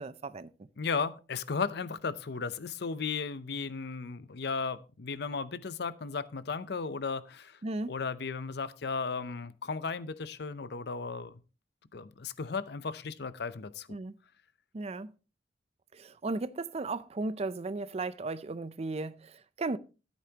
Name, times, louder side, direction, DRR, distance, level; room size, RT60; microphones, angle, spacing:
voice 1, 0.0-0.7 7.6-8.0 13.9-14.1 14.7-15.1 15.9-19.8, right 3 dB, 35° right, 0.5 m, -36 dB
voice 2, 0.8-7.6 7.9-11.3 11.9-13.9, left 5 dB, 65° left, 0.6 m, -35 dB
14.0 x 8.3 x 2.9 m
head